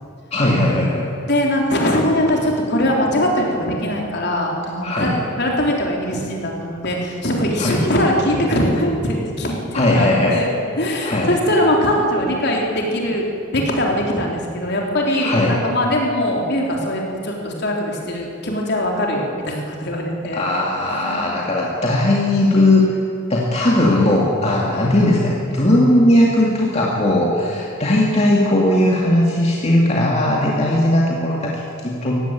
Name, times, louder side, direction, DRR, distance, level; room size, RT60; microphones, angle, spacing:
voice 1, 0.3-1.1 4.8-5.1 7.6-7.8 9.7-10.4 11.0-11.3 15.2-15.6 20.3-22.9 23.3-32.2, left 1 dB, 35° left, -3 dB, 2.3 m, -18 dB
voice 2, 1.3-5.1 5.4-10.5 10.8-13.3 13.5-20.5 20.8-21.4, left 1 dB, 55° left, -1 dB, 3.7 m, -21 dB
18.5 x 15.5 x 9.1 m, 2.5 s
head